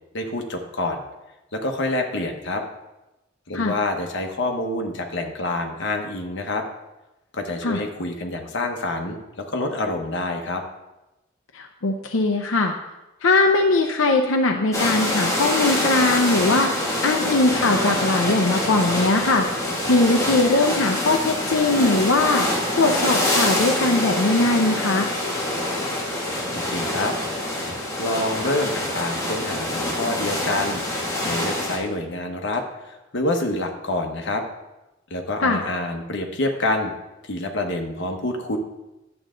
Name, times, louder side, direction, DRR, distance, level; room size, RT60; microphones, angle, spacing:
voice 1, 0.1-1.0 1.5-2.6 3.5-6.6 7.3-10.6 26.5-27.1 28.0-34.4 35.1-36.9 37.2-38.6, left 2 dB, 65° left, 3 dB, 1.2 m, -27 dB
voice 2, 11.5-12.7 13.2-25.1 35.4-35.6, left 2 dB, 90° left, 3 dB, 0.7 m, -20 dB
sound 1, 14.7-31.8, left 1 dB, 15° left, 2.3 m, -25 dB
11.0 x 7.9 x 3.8 m, 0.99 s
head